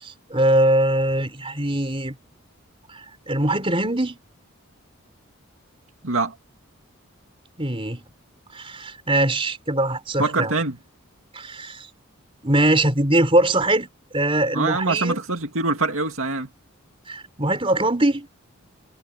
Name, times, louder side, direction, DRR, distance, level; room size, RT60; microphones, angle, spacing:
voice 1, 0.0-2.2 2.9-4.2 7.6-8.0 8.5-10.5 11.3-11.9 12.4-13.9 14.1-15.2 17.1-18.3, right 1 dB, 25° right, 4.4 m, -22 dB
voice 2, 6.0-6.3 10.2-10.8 14.5-16.5, right 3 dB, 70° right, 2.2 m, -24 dB
head